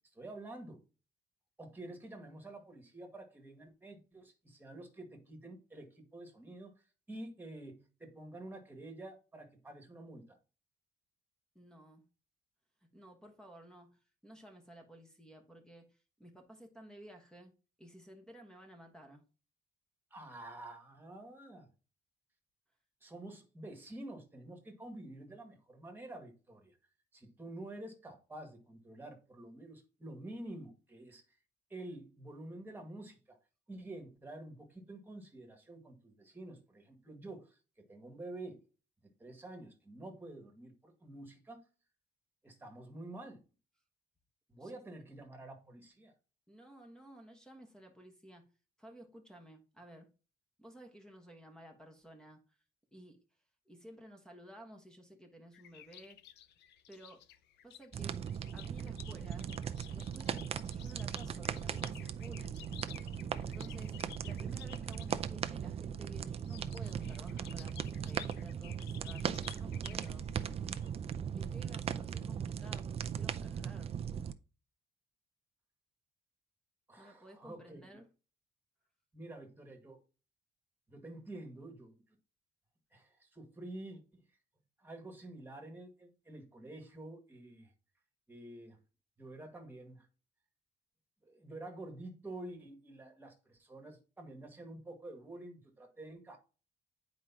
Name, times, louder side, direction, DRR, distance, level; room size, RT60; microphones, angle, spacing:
voice 1, 0.1-0.8 1.6-6.7 7.1-10.4 20.1-21.7 23.0-26.7 27.1-31.4 31.7-33.4 33.7-38.6 39.2-41.6 42.4-43.4 44.5-46.1 76.9-77.9 79.1-80.0 80.9-82.2 82.9-84.2 84.8-87.7 88.3-88.8 89.2-90.1 91.2-96.4, right 2 dB, 10° right, 1.9 m, -49 dB
voice 2, 11.5-12.0 12.9-17.5 17.8-19.2 44.6-44.7 46.5-48.5 48.8-50.1 50.6-52.6 52.9-53.2 53.6-56.2 56.9-57.2 57.6-58.2 58.5-59.5 59.9-62.7 63.4-70.2 71.4-73.9 77.0-78.1, right 1 dB, 5° left, 1.3 m, -54 dB
sound 1, 55.5-65.2 66.3-70.9, left 12 dB, 85° left, 0.6 m, -54 dB
sound 2, 57.9-74.3, right 8 dB, 35° right, 0.5 m, -38 dB
9.3 x 5.0 x 2.9 m
cardioid pair, 140°, 17 cm